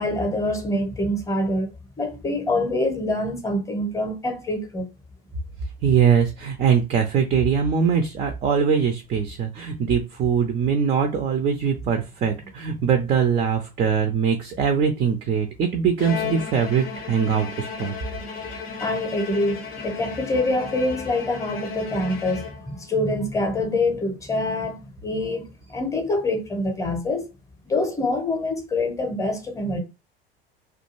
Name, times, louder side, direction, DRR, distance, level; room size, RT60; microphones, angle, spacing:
voice 1, 0.0-1.7 2.0-4.9 18.8-27.3 27.6-29.8, left 2 dB, 10° left, 0.7 m, -25 dB
voice 2, 5.8-17.9, right 7 dB, 20° right, 0.4 m, -22 dB
Bowed string instrument, 16.0-22.9, left 6 dB, 70° left, 0.6 m, -34 dB
2.3 x 2.2 x 2.9 m
figure-of-eight pair, 70°, 30 cm